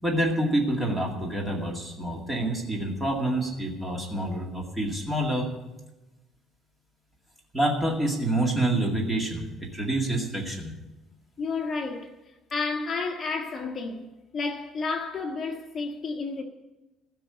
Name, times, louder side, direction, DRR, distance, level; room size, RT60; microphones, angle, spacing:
voice 1, 0.0-5.5 7.5-10.7, right 1 dB, 10° right, 2.2 m, -27 dB
voice 2, 11.4-12.1 12.5-14.1 14.3-16.4, left 4 dB, 30° left, 1.4 m, -31 dB
14.5 x 6.1 x 9.7 m
cardioid pair, 165°, 0 cm